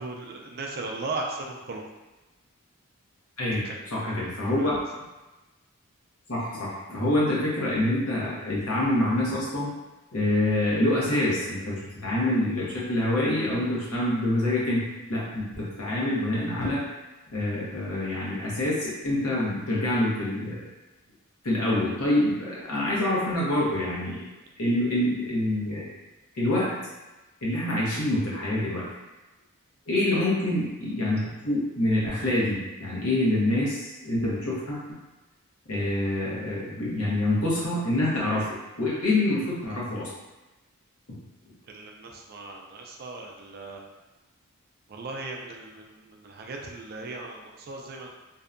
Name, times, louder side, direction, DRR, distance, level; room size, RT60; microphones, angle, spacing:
voice 1, 0.0-1.8 3.5-3.8 4.1-4.7 30.1-30.3 41.7-43.8 44.9-48.1, right 3 dB, 45° right, 0 dB, 0.3 m, -37 dB
voice 2, 3.4-4.8 6.3-9.7 10.1-14.8 15.1-16.8 17.3-20.7 21.4-24.3 24.6-25.9 26.3-26.7 27.4-28.9 29.9-35.0 35.7-38.5 38.8-40.1, left 1 dB, 75° left, -6 dB, 0.9 m, -26 dB
2.6 x 2.2 x 2.5 m, 1.1 s
head